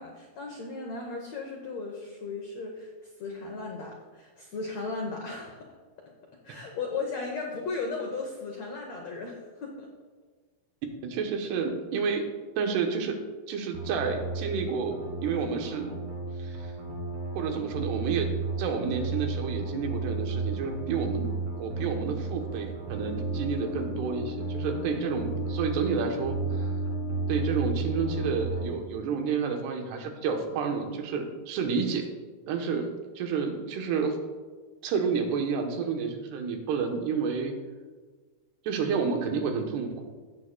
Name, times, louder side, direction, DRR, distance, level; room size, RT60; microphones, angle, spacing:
voice 1, 0.0-5.7 6.4-9.9, left 4 dB, 80° left, 0 dB, 1.5 m, -36 dB
voice 2, 11.0-12.3 12.6-13.2 13.5-15.9 16.4-16.7 17.3-18.3 18.6-21.3 21.6-26.7 27.3-32.1 32.5-32.9 33.2-34.2 34.8-37.5 38.6-40.0, right 5 dB, 85° right, 4 dB, 3.1 m, -30 dB
sound 1, 13.7-28.7, right 4 dB, 70° right, 3.6 m, -33 dB
sound 2, 22.9-28.4, left 15 dB, 15° right, 2.2 m, -39 dB
16.5 x 7.5 x 2.2 m, 1.4 s
omnidirectional pair, 4.6 m